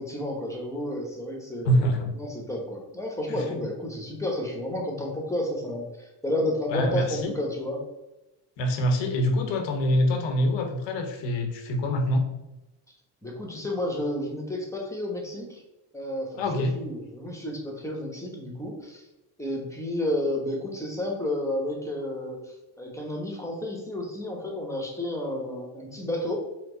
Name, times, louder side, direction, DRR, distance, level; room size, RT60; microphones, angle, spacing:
voice 1, 0.0-7.8 13.2-15.6 15.9-19.0 19.4-26.4, left 1 dB, 5° left, 0 dB, 1.0 m, -31 dB
voice 2, 1.6-2.1 3.3-3.4 6.7-7.3 8.6-12.3 16.4-16.7, equal, 75° left, 4 dB, 0.9 m, -25 dB
4.4 x 2.1 x 3.9 m, 1.0 s
supercardioid pair, 80°, 45 cm